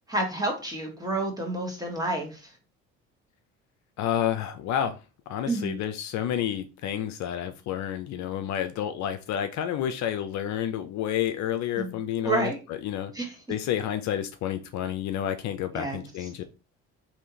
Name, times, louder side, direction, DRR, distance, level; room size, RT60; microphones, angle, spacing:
voice 1, 0.1-2.4 5.5-5.7 11.8-11.9 12.2-12.6 13.1-13.3 15.7-16.0, right 2 dB, 10° right, 1 dB, 1.4 m, -29 dB
voice 2, 4.0-5.0 5.3-13.1 13.5-16.4, left 10 dB, 60° left, 9 dB, 0.5 m, -30 dB
3.4 x 2.7 x 2.8 m, 0.31 s
supercardioid pair, 75°, 33 cm